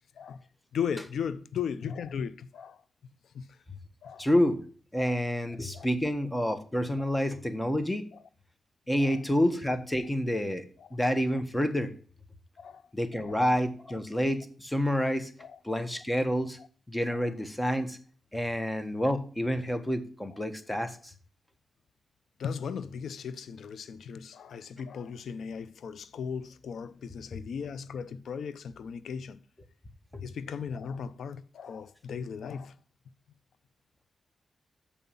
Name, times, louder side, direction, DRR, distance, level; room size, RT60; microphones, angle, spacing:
voice 1, 0.7-2.8 3.3-3.6 4.0-4.3 5.0-5.1 5.7-5.9 9.0-9.2 12.6-12.8 13.2-13.4 15.4-15.6 22.4-29.4 30.2-32.7, left 7 dB, 80° left, 0.6 m, -37 dB
voice 2, 4.2-4.6 4.9-8.1 8.9-11.9 12.9-15.3 15.6-16.6 16.9-18.0 18.3-21.1 30.1-30.2, equal, 15° left, 1.4 m, -28 dB
7.1 x 5.5 x 7.1 m
cardioid pair, 55°, 0 cm